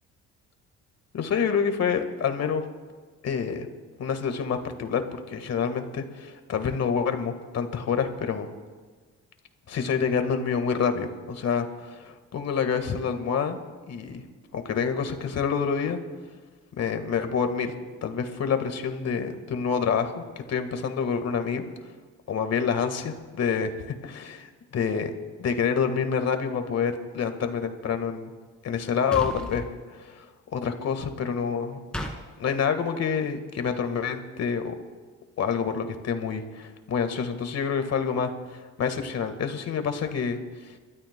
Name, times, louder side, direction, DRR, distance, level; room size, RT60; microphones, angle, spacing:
voice 1, 1.1-2.6 3.2-3.7 4.0-8.5 9.7-13.6 13.9-14.2 14.5-16.0 16.8-17.7 18.0-21.6 22.3-28.3 28.6-30.3 30.5-31.8 32.4-34.8 35.4-40.8, left 6 dB, 60° left, 7 dB, 1.6 m, -27 dB
sound 1, 29.1-29.7 31.9-32.2, equal, 5° left, 2.2 m, -32 dB
28.5 x 13.0 x 2.2 m, 1.4 s
cardioid pair, 90°, 30 cm